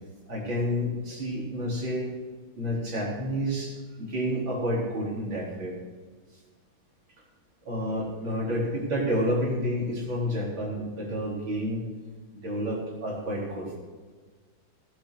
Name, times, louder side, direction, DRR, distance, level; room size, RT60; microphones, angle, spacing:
voice 1, 0.3-2.1 2.6-3.7 4.0-5.7 7.7-11.9 12.4-13.8, equal, 85° right, -4 dB, 4.7 m, -29 dB
16.5 x 10.0 x 4.8 m, 1.4 s
omnidirectional pair, 2.1 m